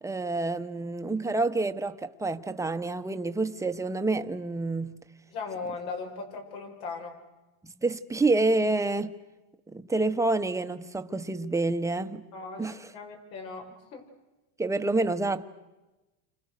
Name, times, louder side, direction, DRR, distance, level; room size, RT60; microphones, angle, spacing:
voice 1, 0.0-5.0 7.6-9.1 9.7-12.2 12.6-12.8 14.6-15.5, right 2 dB, 5° right, 1.0 m, -28 dB
voice 2, 5.3-7.2 12.3-14.0, left 4 dB, 80° left, 7.2 m, -38 dB
29.0 x 26.5 x 6.6 m
supercardioid pair, 135°, 44 cm